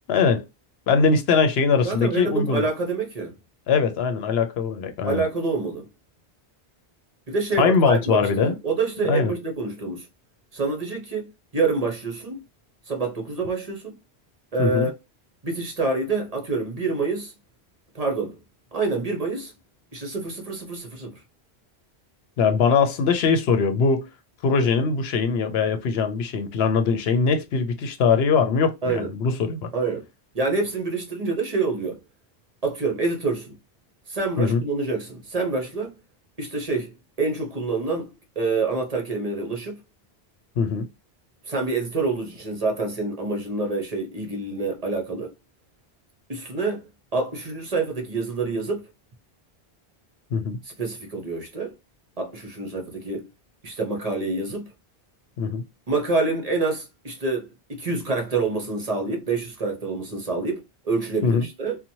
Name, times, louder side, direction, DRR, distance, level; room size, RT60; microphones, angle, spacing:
voice 1, 0.1-0.5 0.9-2.7 3.7-5.2 7.6-8.6 9.1-9.3 14.6-14.9 22.4-24.1 24.4-29.7 34.4-34.6 40.6-40.9 50.3-50.6 55.4-55.6 61.2-61.5, left 5 dB, 75° left, 0.8 m, -21 dB
voice 2, 1.8-3.3 5.0-5.9 7.3-10.1 10.5-12.4 12.9-14.0 14.5-14.9 15.4-17.3 17.9-18.4 18.7-19.5 19.9-21.2 28.8-29.1 29.7-30.1 30.3-32.0 32.6-33.5 34.1-35.9 36.4-39.8 41.4-45.3 46.3-46.9 47.1-48.8 50.6-51.7 52.2-53.3 53.6-54.7 55.9-61.8, right 3 dB, 40° right, 0.7 m, -27 dB
2.9 x 2.2 x 2.6 m
omnidirectional pair, 1.1 m